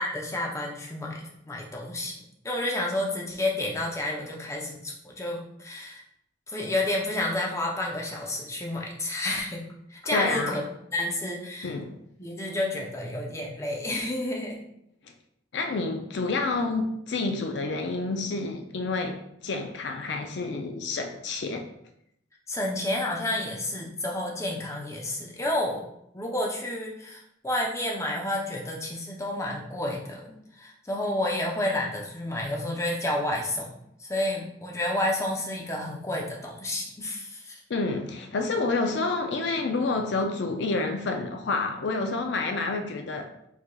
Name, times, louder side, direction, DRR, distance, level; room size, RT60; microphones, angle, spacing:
voice 1, 0.0-2.2 2.4-6.0 6.5-9.6 9.9-10.6 10.9-11.7 12.2-14.6 22.5-25.8 26.1-33.7 34.0-37.6, left 1 dB, 15° left, -1 dB, 0.6 m, -30 dB
voice 2, 10.1-10.6 11.6-12.0 15.5-21.6 37.7-43.3, left 3 dB, 70° left, 4 dB, 0.4 m, -29 dB
4.8 x 4.1 x 2.3 m, 0.75 s
head